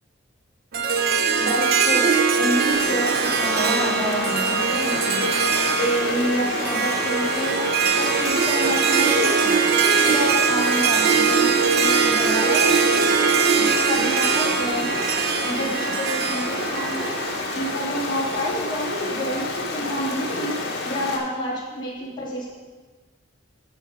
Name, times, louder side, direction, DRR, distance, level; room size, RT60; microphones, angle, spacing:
Harp, 0.7-18.0, right 5 dB, 50° right, 0.8 m, -22 dB
voice 1, 1.4-2.0 2.4-5.5 5.8-7.7 8.0-9.5 10.0-12.8 13.6-15.0 15.4-17.1 17.5-20.6 20.8-22.5, equal, 25° left, -6 dB, 3.1 m, -28 dB
Stream, 2.7-21.2, left 2 dB, 55° left, 1.6 m, -29 dB
12.0 x 7.3 x 5.1 m, 1.3 s
head